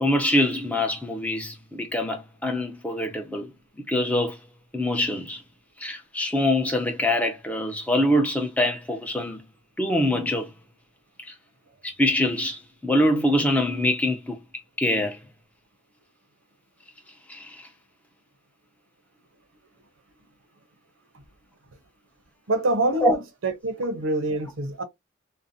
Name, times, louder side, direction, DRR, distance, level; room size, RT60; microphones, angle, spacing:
voice 1, 0.0-3.5 3.9-4.4 4.7-5.4 5.8-9.4 9.8-10.5 11.3-11.4 11.8-14.4 14.8-15.2 17.3-17.7 23.0-23.2, left 1 dB, 5° left, 0.5 m, -24 dB
voice 2, 22.5-24.8, right 2 dB, 90° right, 0.6 m, -26 dB
2.6 x 2.1 x 2.5 m
head